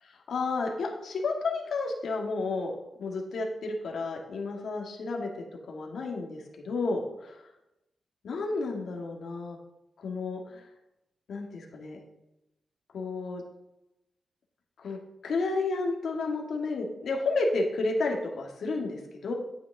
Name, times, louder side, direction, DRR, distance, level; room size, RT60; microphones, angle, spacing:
voice 1, 0.3-2.7 3.0-5.3 5.7-7.3 8.2-9.6 10.0-10.7 11.3-12.0 12.9-13.4 14.8-19.3, left 3 dB, 80° left, 0 dB, 2.2 m, -31 dB
11.5 x 8.9 x 3.7 m, 0.89 s
wide cardioid pair, 110°, 0 cm